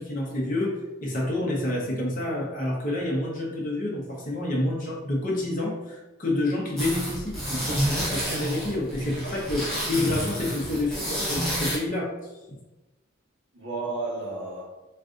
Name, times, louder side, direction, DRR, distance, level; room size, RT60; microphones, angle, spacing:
voice 1, 0.0-9.6 9.9-12.1 12.5-12.6, left 1 dB, 40° left, -3 dB, 0.7 m, -28 dB
sound 1, 6.8-11.8, equal, ahead, 0.7 m, -29 dB
voice 2, 9.2-9.7 13.5-14.6, right 2 dB, 60° right, -4 dB, 0.9 m, -33 dB
2.5 x 2.3 x 3.6 m, 1.1 s
head